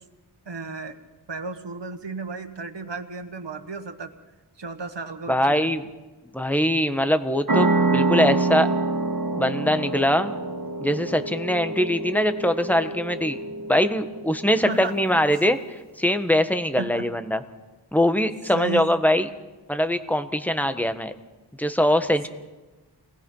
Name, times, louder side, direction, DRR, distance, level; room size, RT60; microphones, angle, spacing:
voice 1, 0.4-1.0 1.3-4.1 4.6-5.7 14.6-15.2 16.8-17.1 18.5-18.9, right 4 dB, 85° right, 7 dB, 1.6 m, -34 dB
voice 2, 5.3-5.8 6.3-8.7 9.4-10.3 10.8-13.4 13.7-17.4 17.9-19.3 19.7-21.1 21.6-22.3, equal, 5° left, 9 dB, 1.4 m, -22 dB
sound 1, 7.5-14.7, right 3 dB, 55° right, 2.1 m, -26 dB
28.0 x 19.5 x 5.6 m, 1.2 s
wide cardioid pair, 65°, 41 cm